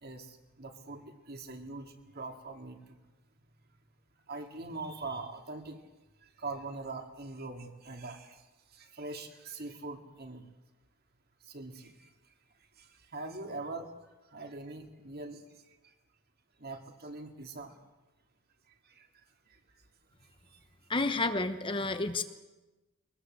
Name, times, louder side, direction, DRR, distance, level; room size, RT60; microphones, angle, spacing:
voice 1, 0.0-3.0 4.3-5.8 6.2-10.5 11.4-12.3 12.8-13.9 14.3-15.9 16.6-17.8 18.8-19.1 19.5-19.6 20.5-20.7, right 3 dB, 45° right, 4 dB, 2.3 m, -43 dB
voice 2, 20.9-22.2, left 2 dB, 25° left, 8 dB, 0.9 m, -30 dB
23.0 x 20.0 x 7.8 m, 1.1 s
head